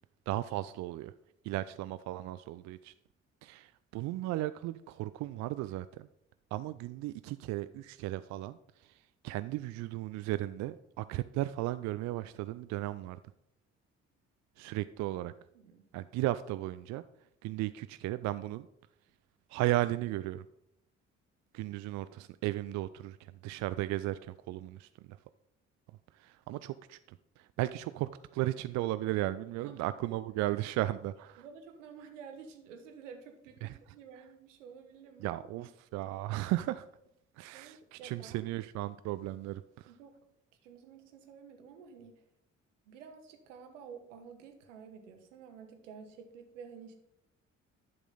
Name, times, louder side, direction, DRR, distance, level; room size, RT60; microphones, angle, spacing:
voice 1, 0.3-1.1 1.4-2.9 3.4-6.1 6.5-8.9 9.2-13.2 14.6-15.3 15.9-17.0 17.4-18.7 19.5-20.4 21.5-25.2 26.2-31.4 33.6-33.7 35.2-36.9 37.4-39.9, right 16 dB, 50° right, 14 dB, 0.4 m, -35 dB
voice 2, 15.5-15.9 29.6-30.2 30.8-30.9 31.4-35.7 37.4-38.4 39.9-40.1 40.6-42.2 42.9-46.9, right 6 dB, 75° right, 6 dB, 1.1 m, -51 dB
11.0 x 6.1 x 3.9 m, 0.78 s
figure-of-eight pair, 45°, 37 cm